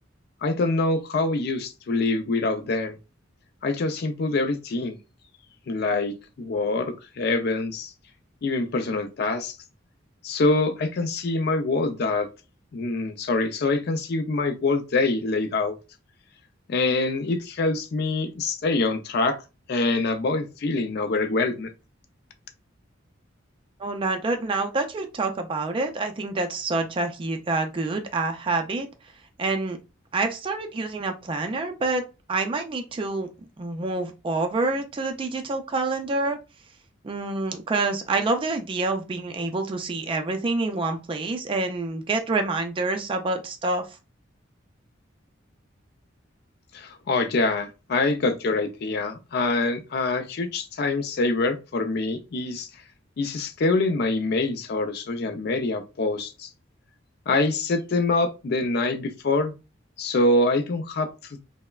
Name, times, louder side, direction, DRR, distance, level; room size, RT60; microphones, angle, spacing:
voice 1, 0.4-3.0 3.6-5.0 5.7-7.9 8.4-9.6 10.2-12.3 12.7-15.8 16.7-19.4 19.7-21.7 46.7-52.7 53.2-56.5 57.3-59.5 60.0-61.4, left 3 dB, 55° left, 0.4 m, -25 dB
voice 2, 23.8-28.9 29.4-29.8 30.1-32.0 32.3-33.3 33.6-36.4 37.0-43.8, right 3 dB, 25° right, 0.3 m, -27 dB
3.2 x 2.0 x 2.2 m
head